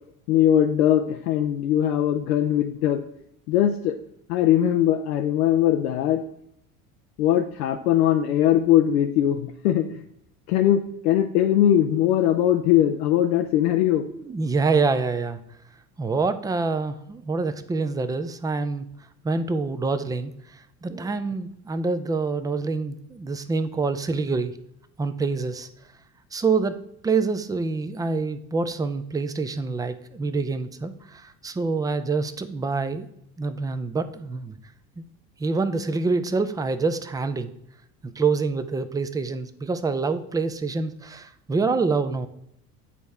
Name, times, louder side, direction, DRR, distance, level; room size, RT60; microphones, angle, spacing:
voice 1, 0.3-3.0 3.5-4.0 4.3-6.2 7.2-10.0 10.5-14.0, left 11 dB, 85° left, 5 dB, 0.6 m, -21 dB
voice 2, 14.1-15.4 16.0-18.9 19.2-24.6 25.0-25.7 26.3-33.1 33.4-34.6 35.0-35.1 35.4-37.5 38.2-42.3, right 4 dB, 10° right, 11 dB, 0.4 m, -26 dB
8.4 x 4.1 x 3.4 m, 0.74 s
hypercardioid pair, 75°, 44 cm